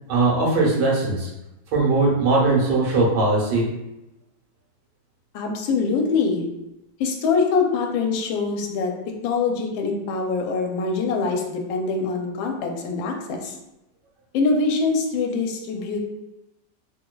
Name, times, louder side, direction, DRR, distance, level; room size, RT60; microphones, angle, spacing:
voice 1, 0.1-1.3 1.7-3.7, right 3 dB, 65° right, -4 dB, 1.5 m, -20 dB
voice 2, 5.3-6.5 7.0-8.9 9.2-13.6 14.3-16.0, left 4 dB, 90° left, 2 dB, 1.3 m, -24 dB
3.4 x 3.1 x 2.2 m, 0.93 s
omnidirectional pair, 2.0 m